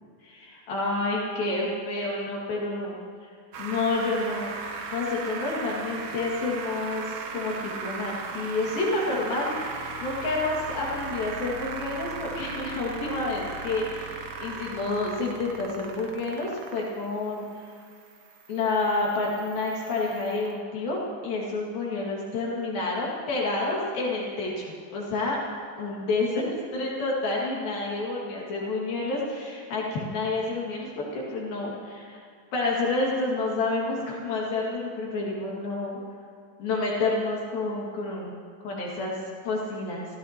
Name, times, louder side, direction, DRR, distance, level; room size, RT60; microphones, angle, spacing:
voice 1, 0.2-3.0 3.2-3.3 3.6-4.5 4.9-17.5 18.5-25.4 25.8-32.2 32.5-36.0 36.6-38.3 38.6-39.2 39.5-40.1, left 2 dB, 75° left, -3 dB, 3.9 m, -29 dB
sound 1, 3.5-20.5, right 5 dB, 70° right, 1.4 m, -38 dB
25.5 x 16.0 x 2.9 m, 2.3 s
omnidirectional pair, 4.3 m